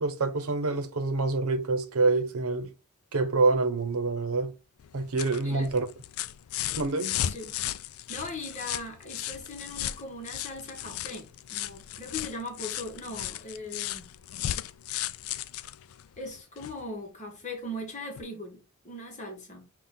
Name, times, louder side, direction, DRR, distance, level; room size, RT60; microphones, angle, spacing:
voice 1, 0.0-2.7 3.1-4.5 4.9-5.9 6.8-7.2, right 3 dB, 80° right, 0.8 m, -26 dB
sound 1, 4.8-16.8 18.2-18.3, left 12 dB, 75° left, 0.3 m, -36 dB
voice 2, 7.2-7.5 8.1-14.1 16.2-19.7, left 1 dB, 35° left, 1.1 m, -39 dB
5.9 x 2.4 x 3.7 m
head